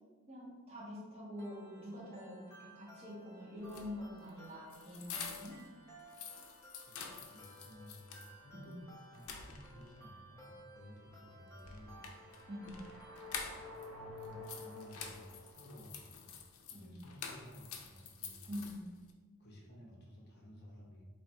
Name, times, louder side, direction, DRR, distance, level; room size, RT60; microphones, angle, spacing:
voice 1, 0.3-5.6 8.5-8.8 12.5-12.8 16.7-17.0 18.5-18.9, left 1 dB, 30° right, -6 dB, 1.1 m, -46 dB
sound 1, 1.4-13.4, equal, 10° left, 0.6 m, -57 dB
sound 2, 3.6-5.7 6.0-8.3 8.7-8.8 9.1-10.0 11.6-13.9 14.2-19.1, left 6 dB, 85° left, 0.5 m, -48 dB
voice 2, 6.8-8.8 9.1-12.1 14.0-16.4 16.7-18.5 19.4-21.1, equal, 45° left, -3 dB, 0.7 m, -55 dB
sound 3, 11.6-15.9, left 2 dB, 75° right, 1.2 m, -51 dB
3.3 x 2.4 x 4.1 m, 1.4 s
head